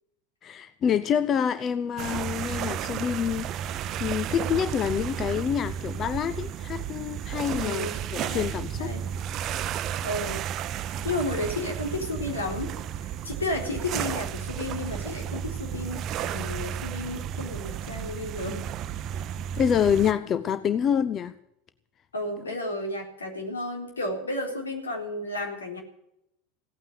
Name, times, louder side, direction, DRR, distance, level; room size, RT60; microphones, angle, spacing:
voice 1, 0.4-8.9 19.6-21.4, left 8 dB, 35° left, 0.8 m, -27 dB
sound 1, 2.0-20.1, right 9 dB, 40° right, 0.7 m, -33 dB
voice 2, 7.6-8.5 8.8-9.1 10.0-10.5 11.0-18.6 22.1-25.8, left 1 dB, 80° left, 3.8 m, -32 dB
17.0 x 9.1 x 9.2 m
figure-of-eight pair, 80°, 0 cm